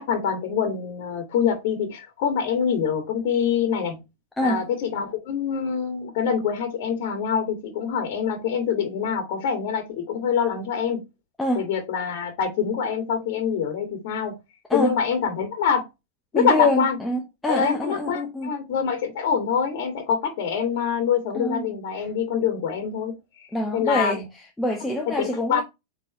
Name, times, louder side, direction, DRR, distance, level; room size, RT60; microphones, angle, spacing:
voice 1, 0.0-4.0 4.4-11.0 11.6-14.4 14.7-15.9 16.3-17.0 17.5-23.5 23.7-24.2 25.1-25.6, left 7 dB, 60° left, 2.3 m, -25 dB
voice 2, 16.3-18.5 21.3-21.7 23.5-24.2 24.6-25.6, left 1 dB, 10° left, 1.2 m, -25 dB
8.0 x 4.1 x 3.1 m
hypercardioid pair, 105°, 0 cm